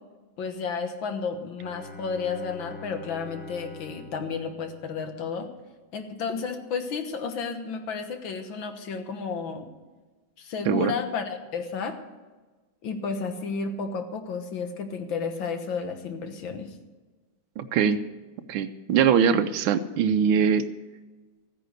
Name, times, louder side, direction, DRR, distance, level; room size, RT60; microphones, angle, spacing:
voice 1, 0.4-5.5 5.9-9.7 10.4-12.0 12.8-16.8, left 5 dB, 75° left, 7 dB, 2.0 m, -32 dB
Bowed string instrument, 1.6-5.5, left 3 dB, 30° left, 1.1 m, -44 dB
voice 2, 17.6-18.0 18.5-20.6, right 7 dB, 90° right, 9 dB, 1.5 m, -22 dB
14.0 x 10.0 x 6.6 m, 1.2 s
omnidirectional pair, 2.2 m